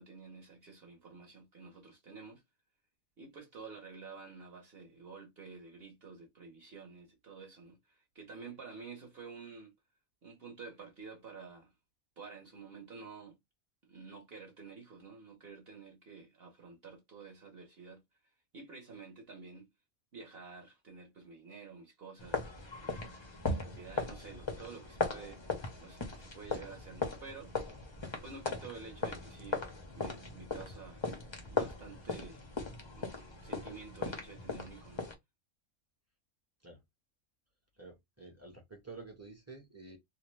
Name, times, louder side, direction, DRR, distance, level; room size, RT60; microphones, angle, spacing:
voice 1, 0.0-2.4 3.2-9.7 10.2-11.7 12.2-13.4 13.8-18.0 18.5-19.7 20.1-23.0 23.5-27.7 28.2-29.7 29.9-31.0 31.4-32.5 32.9-35.1, right 5 dB, 50° right, 0.9 m, -50 dB
sound 1, 22.2-35.1, left 3 dB, 45° left, 0.3 m, -38 dB
voice 2, 37.8-40.0, right 3 dB, 15° right, 0.6 m, -50 dB
2.6 x 2.1 x 3.1 m
omnidirectional pair, 1.5 m